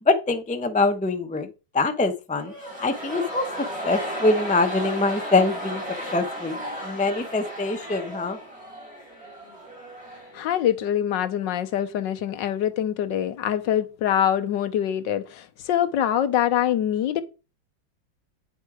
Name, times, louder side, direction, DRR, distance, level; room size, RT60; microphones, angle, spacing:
voice 1, 0.1-1.5 1.7-2.5 2.8-3.5 3.8-5.8 6.1-6.6 6.8-8.4, left 3 dB, 10° left, 0.4 m, -23 dB
sound 1, 2.4-10.5 10.7-10.8, right 1 dB, 30° right, 5.0 m, -34 dB
voice 2, 10.3-17.2, left 10 dB, 75° left, 1.4 m, -24 dB
9.5 x 5.4 x 4.8 m
omnidirectional pair, 2.0 m